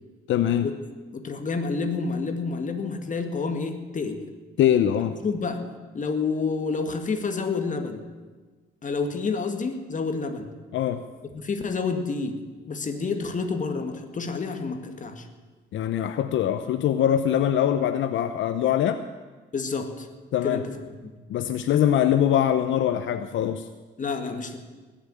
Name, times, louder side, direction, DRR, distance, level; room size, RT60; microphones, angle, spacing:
voice 1, 0.3-0.7 4.6-5.2 10.7-11.0 15.7-19.0 20.3-20.6 21.3-23.7, left 10 dB, 75° left, 10 dB, 0.7 m, -23 dB
voice 2, 1.1-4.2 5.2-5.7 5.9-8.0 8.8-10.5 11.3-15.3 19.5-20.1 20.4-20.8 24.0-24.6, left 4 dB, 40° left, 6 dB, 2.1 m, -29 dB
19.5 x 7.2 x 9.2 m, 1.3 s
cardioid pair, 90°, 20 cm